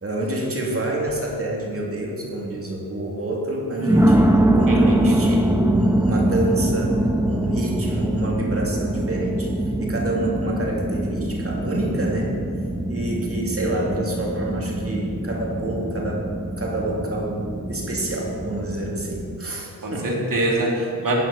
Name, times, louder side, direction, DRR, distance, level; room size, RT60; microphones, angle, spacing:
voice 1, 0.0-7.0 7.2-9.5 9.8-12.4 12.9-16.3 16.6-20.2, right 1 dB, 35° right, -2 dB, 2.8 m, -28 dB
sound 1, 1.1-1.3 2.0-2.1 3.8-19.4, right 1 dB, 5° right, 0.9 m, -23 dB
voice 2, 4.7-5.2 19.8-21.2, right 1 dB, 55° right, -2 dB, 2.8 m, -24 dB
13.5 x 9.1 x 4.3 m, 2.4 s
cardioid pair, 55°, 40 cm